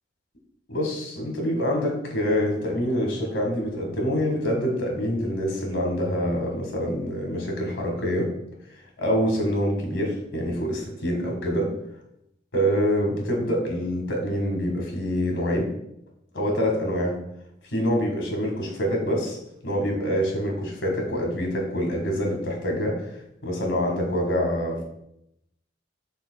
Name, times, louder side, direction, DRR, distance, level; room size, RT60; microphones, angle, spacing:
voice 1, 0.7-8.3 9.0-11.7 12.5-15.7 16.3-17.2 17.7-19.4 19.6-23.1 23.4-24.8, equal, 90° left, 1 dB, 1.7 m, -26 dB
11.0 x 3.9 x 2.2 m, 0.79 s
head